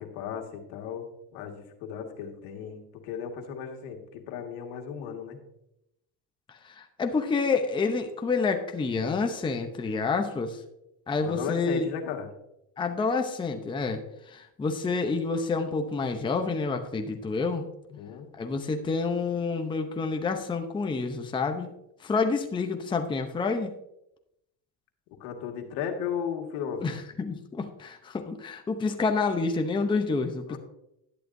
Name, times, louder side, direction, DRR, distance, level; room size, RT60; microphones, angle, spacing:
voice 1, 0.0-5.4 11.2-12.3 17.9-18.3 25.2-26.8 30.5-30.6, left 7 dB, 80° left, 3 dB, 1.9 m, -35 dB
voice 2, 6.5-10.6 11.1-11.9 12.8-14.0 14.3-17.7 18.3-21.7 22.0-23.7 26.8-30.6, left 4 dB, 10° left, 5 dB, 0.7 m, -28 dB
11.5 x 10.5 x 2.6 m, 0.83 s
cardioid pair, 130°, 39 cm